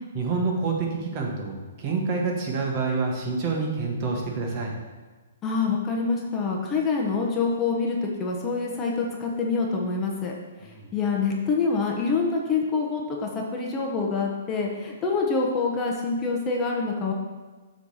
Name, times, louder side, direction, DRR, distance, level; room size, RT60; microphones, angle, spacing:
voice 1, 0.1-4.7 10.6-10.9, right 4 dB, 35° right, 0 dB, 1.4 m, -27 dB
voice 2, 5.4-10.3 10.6-17.1, left 4 dB, 20° left, -1 dB, 1.0 m, -26 dB
7.8 x 3.3 x 5.6 m, 1.3 s
hypercardioid pair, 145°, 0 cm